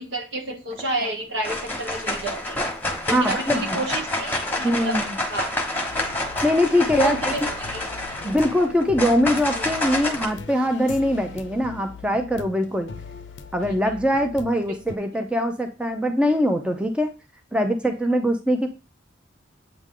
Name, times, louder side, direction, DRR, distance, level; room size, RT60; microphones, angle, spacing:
voice 1, 0.0-2.6 3.1-5.0 5.3-5.7 6.4-6.6 6.9-7.8 8.1-8.2 9.6-9.7 14.7-14.8 17.8-17.9, right 2 dB, 70° right, 1 dB, 1.5 m, -30 dB
sound 1, 0.7-1.1 1.4-10.2, left 1 dB, 10° left, 1.1 m, -28 dB
voice 2, 3.1-3.8 4.6-5.2 6.4-7.3 8.2-12.9 13.5-17.1 17.5-18.7, equal, 5° right, 5 dB, 0.5 m, -22 dB
sound 2, 5.8-15.0, left 4 dB, 70° left, 0.5 m, -40 dB
8.1 x 3.4 x 3.7 m, 0.30 s
head